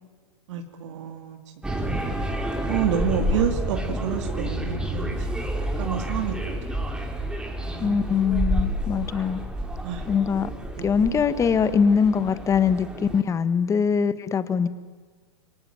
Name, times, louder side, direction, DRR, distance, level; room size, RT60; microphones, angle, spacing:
voice 1, 0.5-1.4 1.8-2.1 2.7-7.2 7.6-8.4 9.8-10.1 10.8-11.1, right 8 dB, 65° right, 4 dB, 2.8 m, -30 dB
sound 1, 1.6-13.2, right 1 dB, 5° right, 2.7 m, -29 dB
voice 2, 7.8-9.4 10.1-10.5 10.8-14.7, left 6 dB, 20° left, 13 dB, 1.4 m, -22 dB
27.0 x 23.5 x 9.5 m, 1.4 s
hypercardioid pair, 130°, 16 cm